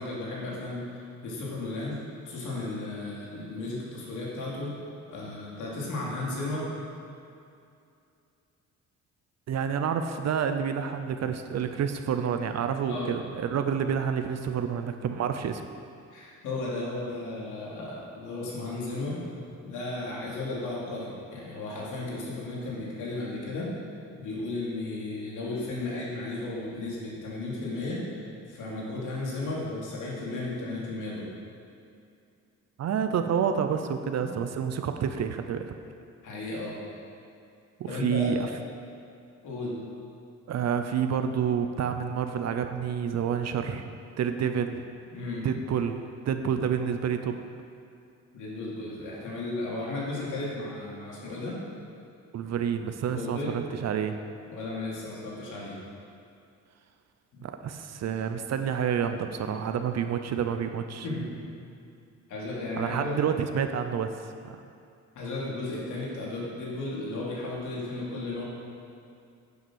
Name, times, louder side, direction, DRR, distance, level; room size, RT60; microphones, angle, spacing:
voice 1, 0.0-2.0 2.2-4.7 5.1-6.6 12.9-13.1 16.1-19.2 19.6-23.7 24.2-31.3 34.3-34.4 36.2-36.8 37.9-38.5 39.4-39.7 45.1-45.4 48.3-51.6 53.1-53.5 54.4-55.8 57.3-57.4 61.0-61.3 62.3-63.2 65.1-68.4, left 2 dB, 85° left, -4 dB, 2.8 m, -34 dB
voice 2, 9.5-15.6 32.8-35.7 37.8-38.5 40.5-43.9 44.2-44.8 45.4-46.0 46.3-47.4 52.3-54.2 57.4-61.1 62.8-64.6, right 7 dB, 60° right, 7 dB, 0.7 m, -29 dB
9.4 x 8.0 x 6.3 m, 2.5 s
cardioid pair, 90°, 30 cm